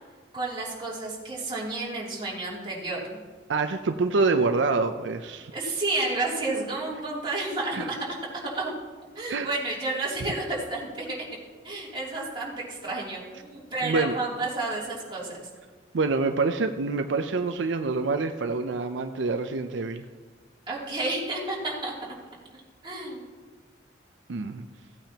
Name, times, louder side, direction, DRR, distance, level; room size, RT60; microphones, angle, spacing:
voice 1, 0.3-3.2 5.5-8.0 8.5-8.7 9.1-11.2 11.6-15.5 20.7-21.9 22.8-23.2, right 2 dB, 30° right, -6 dB, 2.9 m, -31 dB
voice 2, 3.5-5.5 7.7-7.9 9.3-9.5 13.8-14.2 15.9-20.0 24.3-24.6, right 3 dB, 80° right, 7 dB, 0.5 m, -26 dB
16.0 x 8.8 x 2.9 m, 1.5 s
head